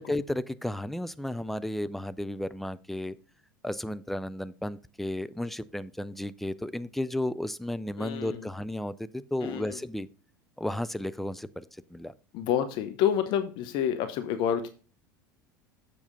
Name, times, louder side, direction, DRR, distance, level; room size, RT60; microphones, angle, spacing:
voice 1, 0.0-3.2 3.6-10.1 10.6-11.6 11.9-12.1, left 1 dB, ahead, 0.4 m, -33 dB
voice 2, 8.0-8.4 9.4-9.8 12.3-14.7, left 9 dB, 45° left, 0.7 m, -28 dB
7.2 x 6.8 x 3.8 m
figure-of-eight pair, 75°, 11 cm